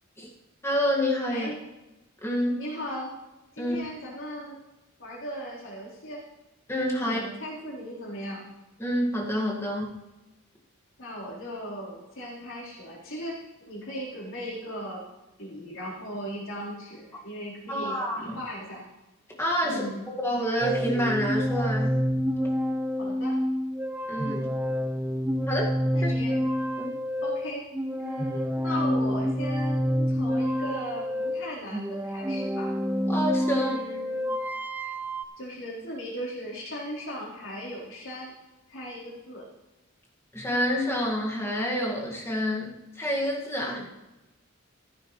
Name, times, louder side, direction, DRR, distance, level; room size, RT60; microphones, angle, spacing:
voice 1, 0.6-1.5 2.2-2.6 3.6-3.8 6.7-7.2 8.8-10.0 17.7-18.4 19.4-19.9 20.2-22.0 24.1-24.5 25.5-25.7 26.0-26.1 26.8-26.9 28.7-28.8 33.1-33.7 40.3-43.9, equal, 15° left, -3 dB, 1.9 m, -28 dB
voice 2, 2.5-3.1 3.5-4.6 5.0-6.2 7.0-8.5 11.0-13.3 13.7-15.0 15.4-18.8 19.6-20.1 23.0-23.3 25.9-26.4 27.2-27.6 28.0-32.7 33.5-34.3 34.8-34.9 35.4-38.3 38.7-39.4 43.6-43.9, equal, 75° left, -5 dB, 4.1 m, -37 dB
sound 1, 20.6-35.2, equal, 10° right, 0.4 m, -28 dB
15.0 x 11.0 x 3.2 m, 1.0 s
head